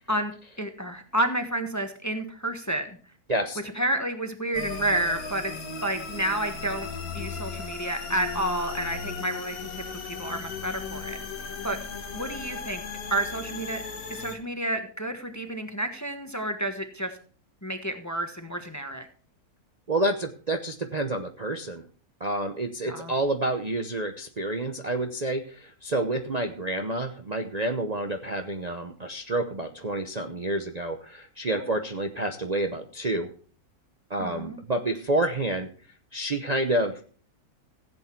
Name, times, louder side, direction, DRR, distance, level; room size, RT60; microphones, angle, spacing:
voice 1, 0.1-3.0 3.7-5.5 5.8-6.9 7.1-11.2 11.6-11.8 12.1-12.8 13.1-13.8 14.1-17.2 17.6-19.1 22.8-23.1 31.5-31.8 34.2-34.6, right 1 dB, 10° left, 7 dB, 1.2 m, -30 dB
voice 2, 3.3-3.6 19.9-21.8 22.2-33.3 34.1-35.7 36.1-37.0, right 1 dB, 35° right, 4 dB, 0.8 m, -29 dB
sound 1, 4.5-14.4, left 5 dB, 70° left, 2.0 m, -36 dB
15.5 x 8.3 x 4.5 m, 0.42 s
omnidirectional pair, 1.6 m